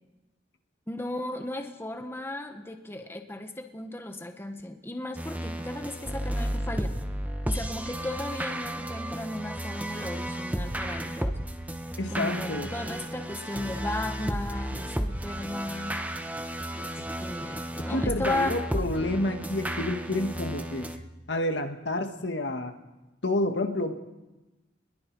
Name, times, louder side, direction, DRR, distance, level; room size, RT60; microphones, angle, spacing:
voice 1, 0.9-6.9 7.5-11.4 12.1-16.0 16.7-16.9 17.2-18.6, left 1 dB, 15° left, 5 dB, 1.4 m, -35 dB
sound 1, 5.2-21.0, right 1 dB, 10° right, 1.1 m, -33 dB
voice 2, 12.0-12.7 17.8-20.9 21.3-22.7 23.2-24.0, left 1 dB, 80° left, 5 dB, 1.7 m, -29 dB
26.0 x 21.0 x 4.7 m, 1.1 s
head